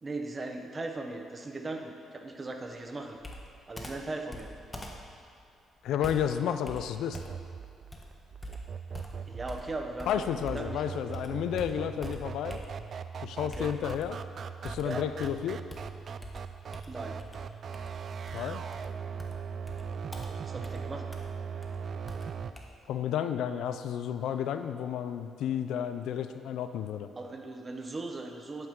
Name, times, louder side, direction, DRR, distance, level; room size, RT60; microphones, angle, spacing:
voice 1, 0.0-3.2 3.7-4.5 9.3-10.8 13.4-13.7 14.8-15.1 16.9-17.2 20.4-21.1 27.2-28.7, right 2 dB, 30° right, 4 dB, 1.1 m, -38 dB
Computer keyboard, 3.2-10.8 11.1-13.0 13.5-14.3 14.6-22.6, left 1 dB, 15° left, 1.3 m, -46 dB
voice 2, 5.8-7.2 10.1-12.6 13.2-14.2 14.6-15.6 18.3-18.6 22.9-27.1, left 9 dB, 80° left, 10 dB, 0.5 m, -31 dB
sound 1, 7.1-22.5, right 6 dB, 55° right, 0.4 m, -40 dB
10.5 x 9.1 x 3.8 m, 2.4 s
cardioid pair, 90°, 0 cm